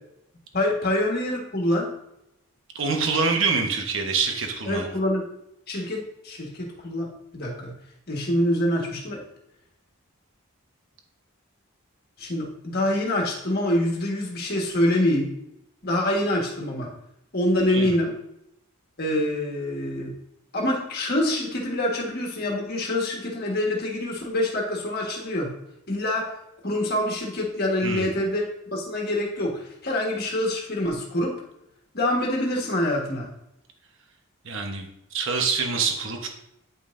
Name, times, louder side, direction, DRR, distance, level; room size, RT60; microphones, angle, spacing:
voice 1, 0.5-1.9 4.7-5.3 5.7-7.7 8.1-9.2 12.2-15.3 15.8-16.9 17.3-18.1 19.0-20.1 20.5-25.5 25.9-26.3 26.6-28.4 28.7-31.3 31.9-33.3, left 1 dB, 45° left, -1 dB, 1.5 m, -25 dB
voice 2, 2.7-4.9 17.7-17.9 27.8-28.1 34.4-36.3, right 4 dB, 60° right, 3 dB, 1.1 m, -26 dB
8.9 x 5.4 x 2.6 m, 0.82 s
head